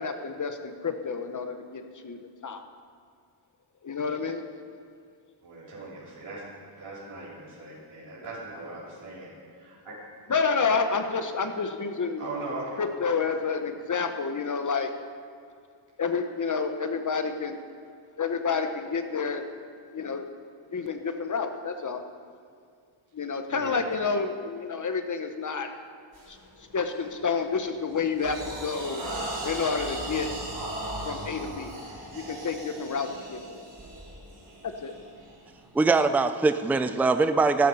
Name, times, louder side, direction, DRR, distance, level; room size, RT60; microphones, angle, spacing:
voice 1, 0.0-2.6 3.8-4.4 10.3-12.2 12.8-14.9 16.0-17.6 18.2-19.5 19.9-20.3 20.7-22.0 23.1-25.7 26.3-29.0 29.4-30.3 31.0-31.7 32.1-33.4 34.6-34.9, left 5 dB, 40° left, 7 dB, 0.9 m, -29 dB
voice 2, 5.4-6.4 6.8-10.0 12.2-13.3 23.5-24.0, right 2 dB, 85° right, -9 dB, 4.3 m, -39 dB
sound 1, 26.1-26.4 26.9-27.2 27.6-35.7, right 1 dB, 45° right, 4.4 m, -38 dB
voice 3, 35.7-37.7, right 3 dB, 5° right, 10 dB, 0.3 m, -22 dB
13.5 x 12.5 x 5.6 m, 2.2 s
wide cardioid pair, 165°, 49 cm